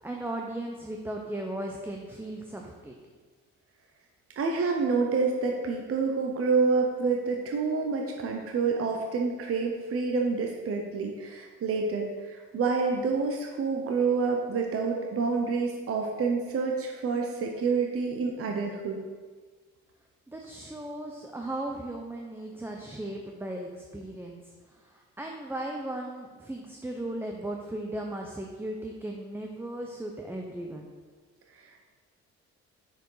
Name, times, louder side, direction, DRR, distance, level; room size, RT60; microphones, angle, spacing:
voice 1, 0.0-2.9 20.3-24.5 24.8-30.9, right 1 dB, 5° right, 1 dB, 0.6 m, -37 dB
voice 2, 4.4-19.0 31.6-31.9, right 4 dB, 50° right, 2 dB, 0.8 m, -28 dB
6.3 x 4.7 x 4.8 m, 1.5 s
cardioid pair, 90°, 30 cm